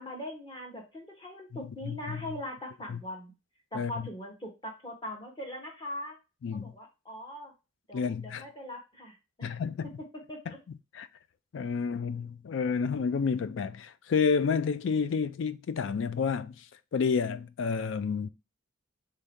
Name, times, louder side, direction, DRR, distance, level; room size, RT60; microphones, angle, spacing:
voice 1, 0.0-3.3 3.7-6.2 6.5-7.5 7.9-9.5 10.3-10.6, left 1 dB, 20° left, 1.0 m, -41 dB
voice 2, 1.5-2.2 2.9-3.0 3.7-3.9 6.4-6.7 7.9-8.4 9.4-9.9 10.5-10.6 10.9-11.1 11.5-16.7 16.9-18.3, left 5 dB, 60° left, 0.3 m, -30 dB
3.8 x 2.7 x 3.4 m
head